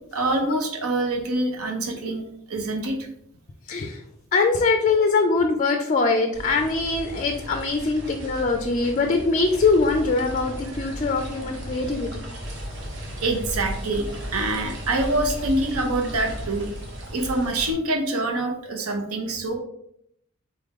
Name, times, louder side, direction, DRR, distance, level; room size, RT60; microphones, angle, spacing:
voice 1, 0.1-2.2 2.5-2.9 13.2-14.0 14.3-16.7 17.1-19.6, right 2 dB, 80° right, 3 dB, 0.7 m, -25 dB
voice 2, 3.7-4.0 4.3-12.2, left 3 dB, 35° left, 4 dB, 0.4 m, -22 dB
sound 1, 6.3-17.7, equal, 55° right, 1.0 m, -35 dB
4.0 x 3.6 x 3.6 m, 0.73 s
head